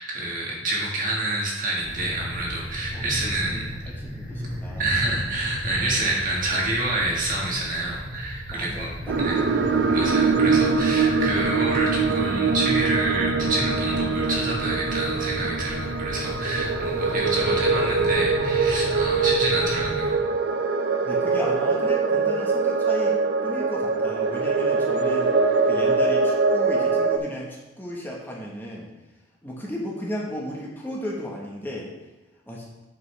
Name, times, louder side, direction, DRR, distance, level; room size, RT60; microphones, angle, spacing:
voice 1, 0.0-3.7 4.8-8.9 9.2-9.4 9.9-20.2, right 2 dB, 50° right, -3 dB, 1.7 m, -28 dB
sound 1, 1.8-20.1, equal, 10° right, 1.8 m, -35 dB
voice 2, 2.7-4.9 8.5-9.5 21.0-23.2 23.4-25.3 25.6-28.9 29.4-31.9 32.5-32.7, equal, 10° left, -3 dB, 1.3 m, -35 dB
sound 2, 9.1-27.2, right 4 dB, 65° right, 0.4 m, -23 dB
7.9 x 5.3 x 3.3 m, 1.1 s
head